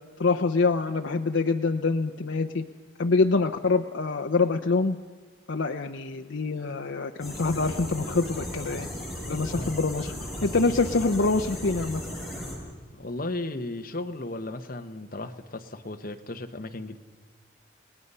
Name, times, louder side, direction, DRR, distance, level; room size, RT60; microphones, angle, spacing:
voice 1, 0.2-2.6 3.0-5.0 5.5-8.9 9.3-10.1 10.4-12.0, left 3 dB, 70° left, 5 dB, 0.7 m, -25 dB
sound 1, 7.2-12.5, left 1 dB, ahead, 6.5 m, -36 dB
voice 2, 12.9-17.0, left 2 dB, 45° left, 6 dB, 1.2 m, -35 dB
30.0 x 18.5 x 5.6 m, 1.4 s
head